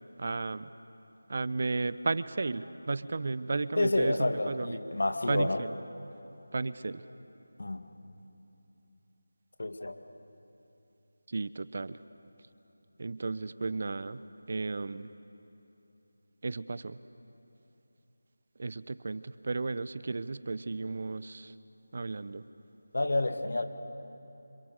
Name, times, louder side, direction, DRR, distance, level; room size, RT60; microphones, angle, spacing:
voice 1, 0.2-0.7 1.3-4.8 5.3-5.7 6.5-7.0 11.3-12.0 13.0-14.2 14.5-15.1 16.4-17.0 18.6-21.5 21.9-22.4, right 3 dB, 50° right, 15 dB, 0.7 m, -34 dB
voice 2, 3.8-5.6 7.6-7.8 9.6-10.0 22.9-23.7, left 2 dB, 65° left, 7 dB, 1.9 m, -29 dB
27.5 x 27.0 x 6.7 m, 2.9 s
figure-of-eight pair, 165°, 0 cm